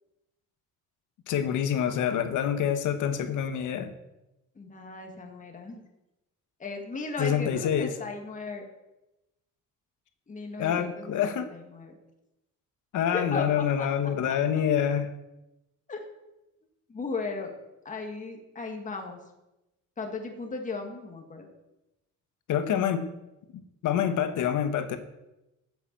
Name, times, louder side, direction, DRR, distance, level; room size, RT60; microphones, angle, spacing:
voice 1, 1.3-3.9 7.2-7.9 10.6-11.5 12.9-15.1 22.5-23.1 23.5-25.0, left 9 dB, 70° left, 9 dB, 1.2 m, -26 dB
voice 2, 4.5-5.7 6.6-8.7 10.3-11.9 13.1-13.9 14.3-14.4 15.9-16.0 16.9-17.5 17.8-19.2 20.0-21.5, left 3 dB, 25° left, 3 dB, 1.7 m, -36 dB
8.9 x 8.1 x 7.4 m, 0.95 s
cardioid pair, 150°, 32 cm